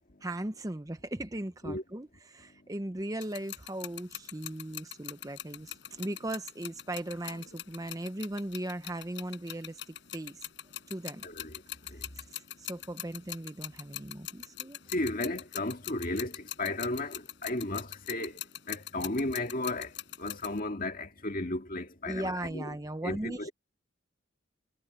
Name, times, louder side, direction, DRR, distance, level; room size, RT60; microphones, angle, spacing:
voice 1, 0.2-10.5 10.9-11.2 12.2-14.8 22.1-23.5, right 1 dB, 15° right, 0.7 m, -38 dB
sound 1, 3.2-20.6, left 13 dB, 60° left, 5.3 m, -43 dB
voice 2, 11.2-12.7 14.8-22.7 23.0-23.5, left 2 dB, 45° left, 2.1 m, -35 dB
head